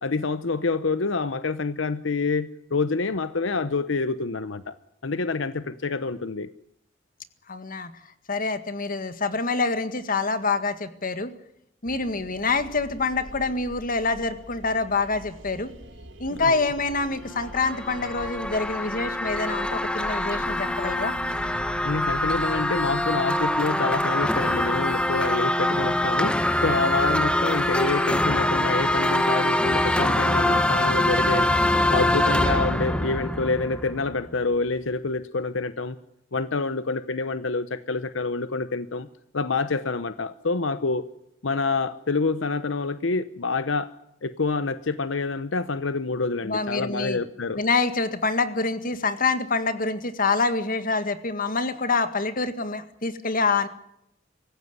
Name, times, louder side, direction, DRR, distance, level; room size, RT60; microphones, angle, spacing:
voice 1, 0.0-4.8 5.0-6.5 16.3-16.6 21.8-31.5 31.9-36.0 36.3-39.1 39.3-41.1 41.4-43.9 44.2-47.6, left 3 dB, 75° left, 13 dB, 0.9 m, -27 dB
voice 2, 7.5-7.9 8.3-11.3 11.8-15.7 16.2-21.1 46.4-47.2 47.6-53.7, left 3 dB, 45° left, 11 dB, 1.9 m, -26 dB
sound 1, 11.8-24.5, right 1 dB, 70° right, 2.9 m, -42 dB
sound 2, 17.3-34.3, left 1 dB, 5° left, 1.4 m, -24 dB
25.0 x 15.0 x 9.7 m, 0.79 s
head